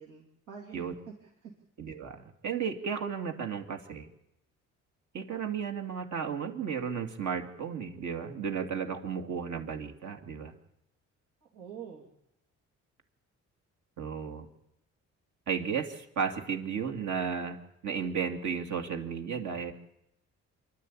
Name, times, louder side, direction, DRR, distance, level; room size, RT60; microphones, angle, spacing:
voice 1, 0.0-1.5 11.5-12.0, right 7 dB, 85° right, -3 dB, 3.4 m, -46 dB
voice 2, 1.8-4.1 5.1-10.5 14.0-14.5 15.5-17.6 17.8-19.7, right 6 dB, 70° right, 5 dB, 2.5 m, -34 dB
25.5 x 12.0 x 8.7 m, 0.83 s
cardioid pair, 90°, 30 cm